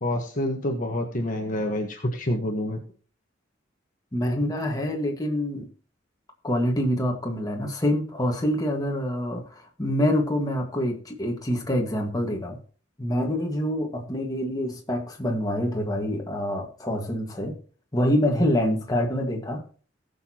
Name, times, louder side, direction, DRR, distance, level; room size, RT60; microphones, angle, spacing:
voice 1, 0.0-2.8, left 1 dB, 45° left, 3 dB, 1.4 m, -27 dB
voice 2, 4.1-5.7 6.4-12.6 13.0-17.6 17.9-19.6, equal, 20° left, 1 dB, 1.8 m, -26 dB
18.5 x 6.9 x 3.0 m, 0.41 s
head